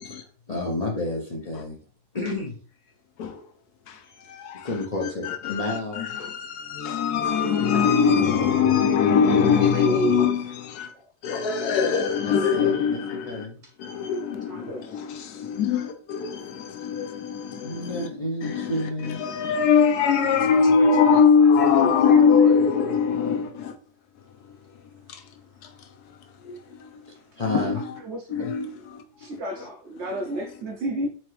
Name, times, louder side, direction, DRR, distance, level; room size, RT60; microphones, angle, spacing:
voice 1, 0.0-1.8 2.1-2.6 4.6-6.2 12.2-13.0 13.3-13.6 17.5-19.2 27.4-27.8, left 1 dB, 40° left, 0.5 m, -30 dB
voice 2, 3.9-10.9 11.2-13.5 13.8-18.1 18.4-23.7 24.4-25.3 25.6-27.1 27.4-27.9 28.3-29.0 29.3-29.4, left 6 dB, 80° left, 1.2 m, -23 dB
voice 3, 9.6-10.3 14.5-15.0 20.8-21.2 21.8-22.5 27.7-28.3 29.2-31.1, equal, 60° right, 0.8 m, -31 dB
4.4 x 2.8 x 3.1 m
omnidirectional pair, 1.7 m